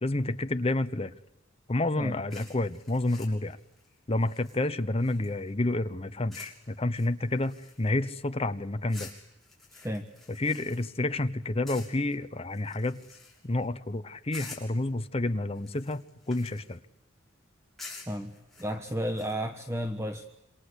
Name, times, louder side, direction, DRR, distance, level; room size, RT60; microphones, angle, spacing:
voice 1, 0.0-1.1 1.7-3.6 4.1-9.1 10.3-13.0 13.4-16.0 16.3-16.8, left 2 dB, 30° left, 10 dB, 1.0 m, -29 dB
sound 1, 2.3-5.5 6.3-6.6 6.9-8.1 8.9-11.2 11.7-12.1 12.5-13.6 14.3-14.8 15.5-16.8 17.8-19.3, left 4 dB, ahead, 6.5 m, -49 dB
voice 2, 9.7-10.1 18.1-18.3 18.6-20.2, equal, 15° right, 6 dB, 1.3 m, -33 dB
27.5 x 25.5 x 8.3 m, 0.94 s
head